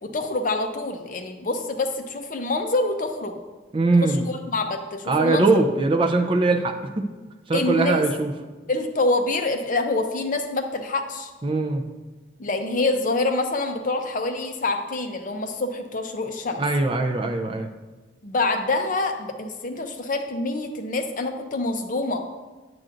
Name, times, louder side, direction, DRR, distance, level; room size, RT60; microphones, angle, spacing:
voice 1, 0.0-3.4 4.0-5.5 7.5-8.1 8.7-11.3 12.4-16.6 18.2-22.2, left 2 dB, 45° left, 5 dB, 0.6 m, -26 dB
voice 2, 3.7-4.2 5.1-7.1 7.5-8.3 11.4-11.9 16.6-17.7, right 3 dB, 25° right, 4 dB, 0.4 m, -21 dB
8.9 x 7.6 x 2.5 m, 1.3 s
head